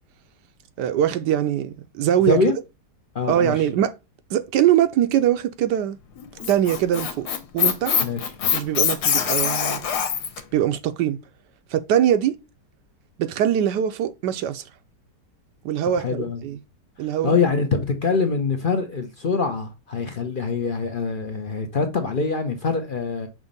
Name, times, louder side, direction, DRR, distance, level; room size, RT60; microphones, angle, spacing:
voice 1, 0.8-2.5 3.3-3.9 4.3-6.0 6.5-7.3 7.5-8.0 8.5-9.9 10.5-11.2 11.7-12.4 13.2-14.6 15.6-16.6 17.0-17.4, right 10 dB, 75° right, 1.2 m, -22 dB
voice 2, 2.3-2.6 3.1-3.5 8.0-8.3 16.0-16.4 17.2-23.3, left 4 dB, 50° left, 0.6 m, -24 dB
Squeak, 6.2-10.4, left 7 dB, 65° left, 1.4 m, -23 dB
6.2 x 2.9 x 5.2 m
omnidirectional pair, 1.9 m